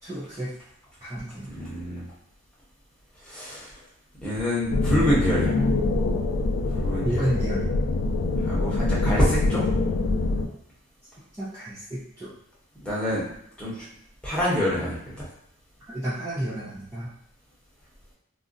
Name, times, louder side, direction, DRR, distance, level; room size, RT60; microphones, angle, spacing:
voice 1, 0.0-0.5 1.1-1.5 7.0-7.7 11.4-12.3 15.9-17.1, right 1 dB, 15° right, -10 dB, 0.5 m, -31 dB
voice 2, 1.4-2.1 3.2-3.8 4.2-5.5 6.8-7.3 8.4-9.6 12.8-13.3 13.6-13.9 14.2-15.3, equal, 5° left, -9 dB, 0.9 m, -27 dB
sound 1, 4.7-10.5, left 2 dB, 65° left, 0.3 m, -24 dB
2.4 x 2.0 x 3.8 m, 0.75 s
head